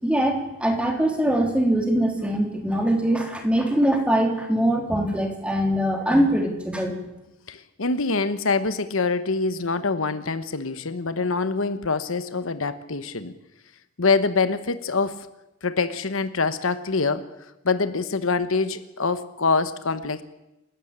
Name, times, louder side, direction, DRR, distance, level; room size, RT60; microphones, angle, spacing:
voice 1, 0.0-6.9, right 1 dB, 5° right, 3 dB, 3.5 m, -22 dB
voice 2, 7.5-13.3 14.0-15.3 15.6-17.3 17.6-20.2, left 4 dB, 70° left, 12 dB, 1.1 m, -25 dB
28.5 x 13.0 x 8.9 m, 0.96 s
head